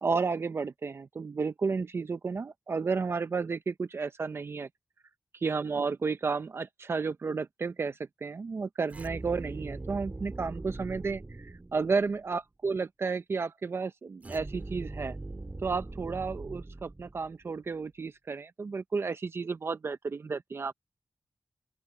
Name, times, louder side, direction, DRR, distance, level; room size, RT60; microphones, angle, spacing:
voice 1, 0.0-4.7 5.4-15.2 15.6-20.7, right 4 dB, 55° right, 0.6 m, -32 dB
sound 1, 8.9-12.2 14.2-17.5, right 2 dB, 30° right, 2.4 m, -41 dB
open air
wide cardioid pair, 100°, 5 cm